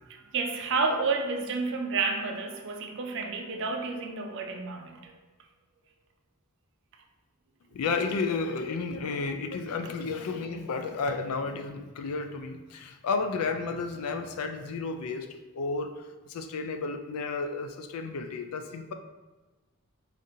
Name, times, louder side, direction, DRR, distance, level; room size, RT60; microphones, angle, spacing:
voice 1, 0.1-5.2, right 4 dB, 55° right, 3 dB, 0.5 m, -30 dB
voice 2, 7.7-15.3 15.5-18.9, left 4 dB, 80° left, 6 dB, 0.4 m, -32 dB
5.1 x 2.5 x 2.7 m, 1.2 s
head